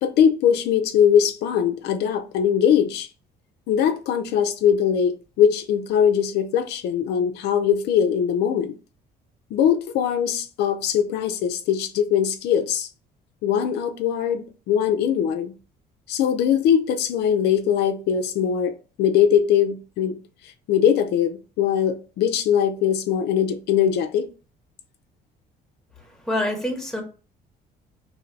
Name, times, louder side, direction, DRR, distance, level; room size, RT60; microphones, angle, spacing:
voice 1, 0.0-3.1 3.7-8.7 9.5-12.9 13.4-15.5 16.1-20.2 20.4-24.3, left 8 dB, 75° left, 0.5 m, -21 dB
voice 2, 26.0-27.0, left 1 dB, 5° left, 1.3 m, -27 dB
3.1 x 2.6 x 4.5 m
cardioid pair, 110°, 17 cm